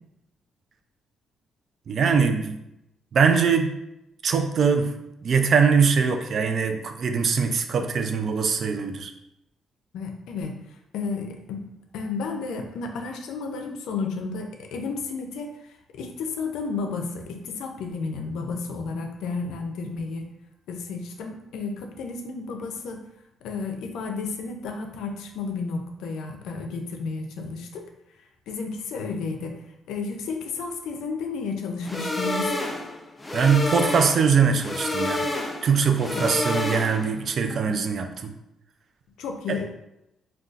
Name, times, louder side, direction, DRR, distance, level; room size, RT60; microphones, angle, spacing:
voice 1, 1.9-2.6 3.1-3.7 4.2-4.9 5.2-9.1 33.3-35.3 35.6-38.3 39.5-39.6, right 6 dB, 55° right, 6 dB, 0.3 m, -22 dB
voice 2, 9.9-10.5 10.9-11.6 11.9-15.5 15.9-20.3 20.7-23.0 23.4-27.8 28.5-29.6 29.9-32.6 36.1-36.3 37.5-37.8 39.2-39.7, left 4 dB, 90° left, 4 dB, 0.4 m, -32 dB
sound 1, 31.8-37.2, left 2 dB, 15° left, 0.4 m, -29 dB
3.8 x 2.3 x 2.4 m, 0.86 s
cardioid pair, 105°, 0 cm